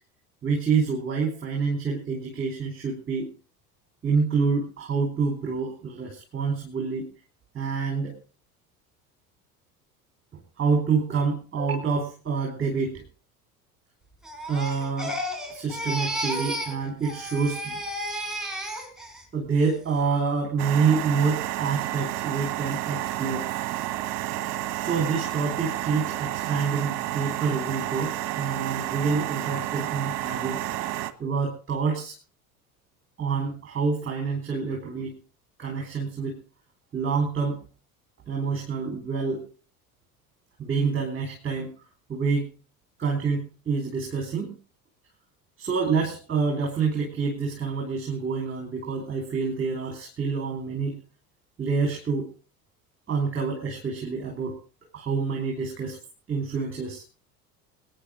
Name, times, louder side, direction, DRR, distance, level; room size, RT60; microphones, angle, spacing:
voice 1, 0.4-3.3 4.0-7.1 7.5-8.2 10.3-13.0 14.5-15.2 15.5-17.8 19.3-23.5 24.8-30.6 31.2-32.2 33.2-35.2 35.6-36.4 36.9-37.6 38.3-39.5 40.6-41.7 42.1-42.5 43.0-44.6 45.6-51.0 51.6-52.3 53.1-54.6 54.9-56.0 56.3-57.0, right 5 dB, 25° right, 1 dB, 4.2 m, -27 dB
Crying sobbing, 14.2-16.8 17.0-19.2 19.6-20.0, equal, ahead, 4.5 m, -33 dB
sound 1, 20.6-31.1, right 14 dB, 50° right, 1.2 m, -31 dB
25.0 x 9.8 x 3.9 m, 0.34 s
figure-of-eight pair, 70°, 45 cm